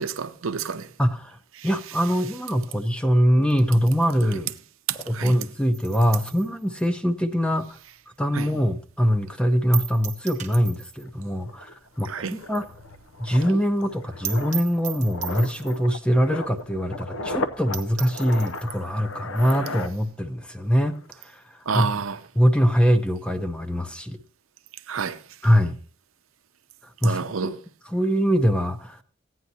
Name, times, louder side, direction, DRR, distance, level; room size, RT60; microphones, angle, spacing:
voice 1, 0.0-0.9 1.6-1.7 4.9-5.4 8.3-8.5 12.0-12.3 21.7-22.2 24.9-25.2 27.0-27.5, right 6 dB, 85° right, 0.7 m, -29 dB
voice 2, 1.0-1.4 1.6-4.5 5.1-7.8 8.2-12.6 13.2-21.9 22.4-24.2 25.4-25.8 27.0-27.5 27.9-29.0, equal, 5° left, 0.6 m, -23 dB
sound 1, 5.7-8.4 8.7-8.8 9.1-9.2 9.7-11.1 11.4-11.5 11.8-11.9 12.3-12.4 12.7-12.8 13.0-13.1 13.4-13.5 13.9-14.0 14.2-15.9 16.6-16.7 17.0-17.1 17.5-17.6 17.7-18.7, right 11 dB, 35° right, 1.0 m, -37 dB
sound 2, 11.1-11.2 11.5-20.5 20.8-21.1, left 2 dB, 85° left, 0.7 m, -36 dB
15.0 x 9.4 x 2.8 m
head